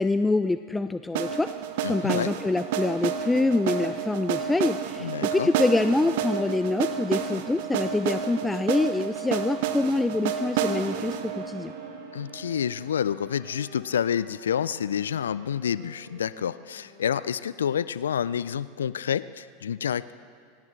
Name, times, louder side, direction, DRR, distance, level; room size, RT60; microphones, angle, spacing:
voice 1, 0.0-1.5 1.9-11.7, left 2 dB, 10° left, 11 dB, 0.4 m, -25 dB
sound 1, 1.1-13.1, right 8 dB, 65° right, 1.1 m, -30 dB
voice 2, 1.8-2.3 5.0-5.5 12.1-20.1, left 8 dB, 80° left, 17 dB, 0.3 m, -28 dB
sound 2, 10.0-18.0, right 2 dB, 80° right, 3.8 m, -51 dB
25.0 x 17.5 x 3.3 m, 2.3 s
hypercardioid pair, 90°, 0 cm